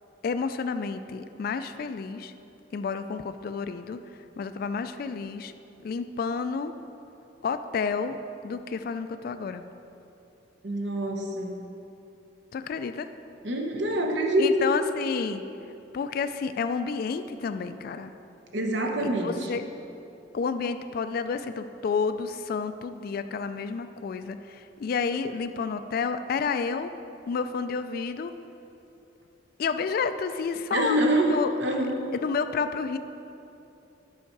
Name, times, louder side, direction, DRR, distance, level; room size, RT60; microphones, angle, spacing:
voice 1, 0.2-2.3 2.7-5.5 5.8-6.7 7.4-8.2 8.4-9.7 12.5-13.1 14.4-15.4 15.9-18.1 19.0-19.7 20.3-26.9 27.3-28.3 29.6-31.0 31.3-31.6 32.1-33.0, left 5 dB, 50° left, 10 dB, 0.3 m, -30 dB
voice 2, 10.6-11.6 13.4-14.7 18.5-19.3 30.7-31.3 31.6-32.1, right 1 dB, 70° right, 1 dB, 1.1 m, -25 dB
10.5 x 5.6 x 4.6 m, 2.9 s
head